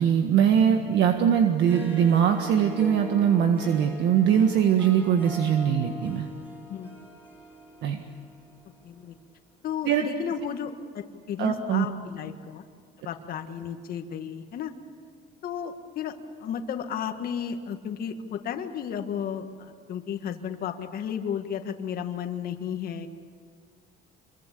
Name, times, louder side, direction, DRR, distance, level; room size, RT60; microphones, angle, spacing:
voice 1, 0.0-6.3 7.8-8.0 9.9-10.0 11.4-11.9, right 8 dB, 65° right, 5 dB, 1.7 m, -22 dB
Harp, 1.5-9.0, left 1 dB, 10° right, 5.6 m, -42 dB
voice 2, 8.8-9.2 9.6-12.7 13.1-14.7 15.4-16.1 16.4-23.1, left 8 dB, 50° left, 6 dB, 1.7 m, -33 dB
26.5 x 23.0 x 8.5 m, 2.1 s
cardioid pair, 135°, 20 cm